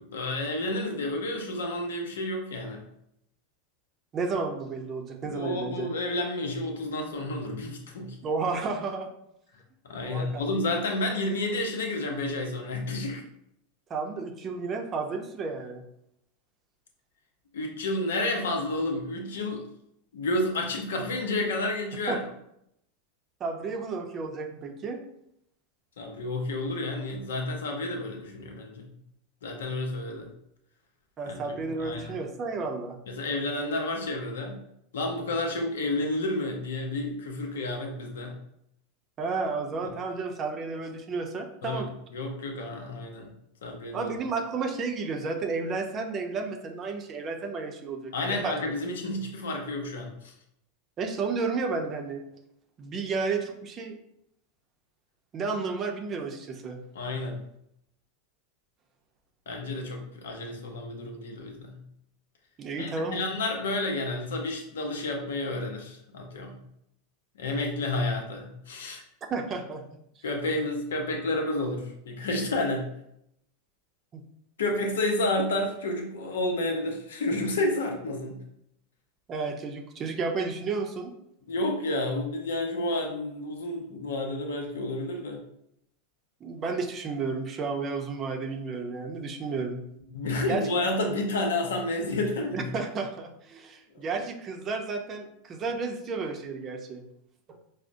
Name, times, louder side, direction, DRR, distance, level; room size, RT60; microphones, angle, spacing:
voice 1, 0.1-2.8 5.2-8.2 9.8-13.2 17.5-19.7 20.1-22.2 26.0-28.9 29.4-30.3 31.3-31.4 31.8-32.2 33.1-34.6 34.9-38.4 41.6-43.3 43.6-44.1 48.1-50.3 56.9-57.4 59.5-61.8 62.8-66.6 67.4-69.0 70.2-72.9 74.6-78.4 81.5-85.4 90.1-92.7 93.9-94.1, left 2 dB, 85° left, 2 dB, 0.7 m, -30 dB
voice 2, 4.1-5.9 8.2-9.1 10.0-10.3 13.9-15.8 22.1-22.2 23.4-25.0 31.2-33.0 39.2-41.9 43.9-48.7 51.0-52.2 52.8-54.0 55.3-56.8 62.6-63.2 69.3-69.8 74.1-74.2 79.3-81.1 86.4-89.8 90.5-90.7 92.5-97.0 97.5-97.6, right 4 dB, 35° right, 3 dB, 0.5 m, -32 dB
4.8 x 2.1 x 2.6 m, 0.76 s
hypercardioid pair, 110°, 0 cm